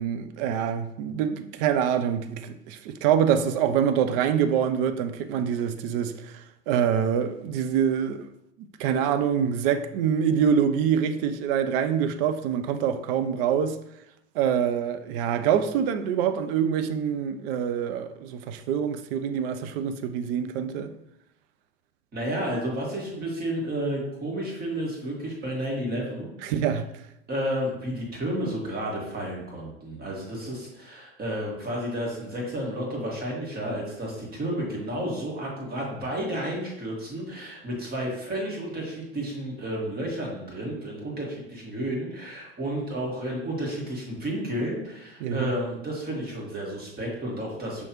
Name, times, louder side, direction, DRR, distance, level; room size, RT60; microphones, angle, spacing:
voice 1, 0.0-8.3 8.6-13.8 14.3-20.9 26.4-26.9 45.2-45.5, right 8 dB, 50° right, 0.5 m, -25 dB
voice 2, 22.1-26.3 27.3-47.9, right 1 dB, 25° right, 1.8 m, -31 dB
5.5 x 3.1 x 2.9 m
hypercardioid pair, 90°, 35 cm